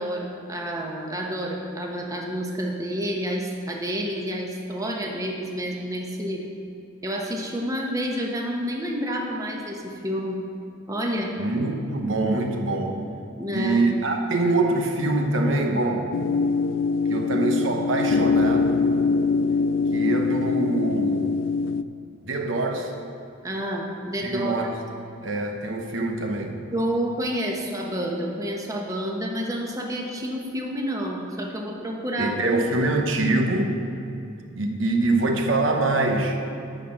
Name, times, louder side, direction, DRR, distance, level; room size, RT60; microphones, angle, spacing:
voice 1, 0.0-6.4 7.0-10.4 10.9-11.3 13.4-13.8 23.4-24.7 26.7-32.6, equal, 15° right, 0 dB, 1.0 m, -29 dB
voice 2, 11.4-13.0 13.5-16.1 17.1-18.8 19.9-21.3 22.2-22.9 24.2-24.8 25.2-26.6 32.2-33.8 34.5-36.4, right 2 dB, 75° right, 3 dB, 0.9 m, -24 dB
sound 1, 16.1-21.8, left 4 dB, 75° left, 0.3 m, -23 dB
11.5 x 4.2 x 7.6 m, 2.7 s
head